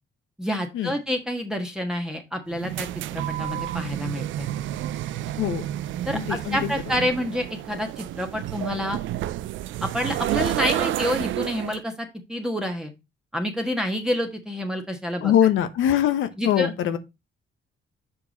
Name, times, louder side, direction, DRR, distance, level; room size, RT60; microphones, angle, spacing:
voice 1, 0.4-4.5 6.1-9.0 9.8-12.9 13.3-15.3 16.4-16.7, equal, 5° right, 1.3 m, -28 dB
sound 1, 2.5-11.8, right 13 dB, 75° right, 0.5 m, -30 dB
voice 2, 6.1-6.7 15.2-17.0, left 10 dB, 85° left, 1.0 m, -22 dB
6.9 x 4.8 x 4.0 m
cardioid pair, 90°, 20 cm